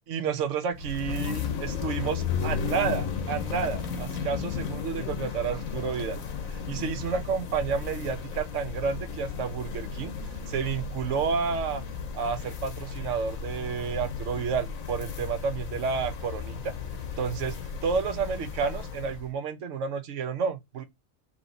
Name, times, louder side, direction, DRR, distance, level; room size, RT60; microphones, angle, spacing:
voice 1, 0.1-6.2 6.5-10.1 10.5-11.8 12.1-16.7 17.2-17.5 17.8-20.8, right 6 dB, 65° right, 1.0 m, -30 dB
sound 1, 0.7-19.3, left 6 dB, 85° left, 1.2 m, -34 dB
4.0 x 3.0 x 3.8 m
omnidirectional pair, 1.4 m